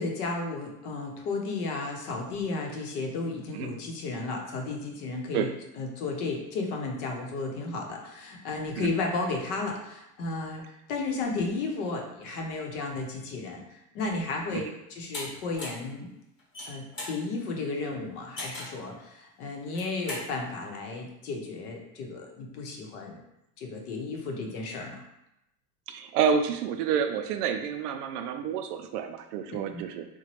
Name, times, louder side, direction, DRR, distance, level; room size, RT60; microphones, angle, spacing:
voice 1, 0.0-5.5 5.8-16.1 16.6-23.2 23.6-25.0 29.7-29.8, left 3 dB, 70° left, 1 dB, 0.8 m, -33 dB
sound 1, 15.1-15.3 15.6-15.9 16.4-17.2 18.4-18.8 19.6-20.3, left 1 dB, 25° left, 1.0 m, -37 dB
voice 2, 25.9-30.1, right 7 dB, 75° right, 7 dB, 0.5 m, -29 dB
3.0 x 2.2 x 2.9 m, 0.85 s
supercardioid pair, 135°, 46 cm